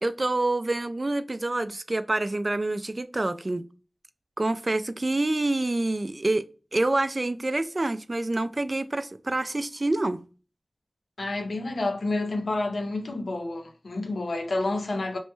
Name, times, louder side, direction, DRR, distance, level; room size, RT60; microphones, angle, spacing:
voice 1, 0.0-3.6 4.4-6.4 6.7-10.2, right 2 dB, 45° right, 0.3 m, -27 dB
voice 2, 11.2-15.2, left 2 dB, 90° left, 0.5 m, -29 dB
3.0 x 2.2 x 3.0 m
wide cardioid pair, 45°, 0 cm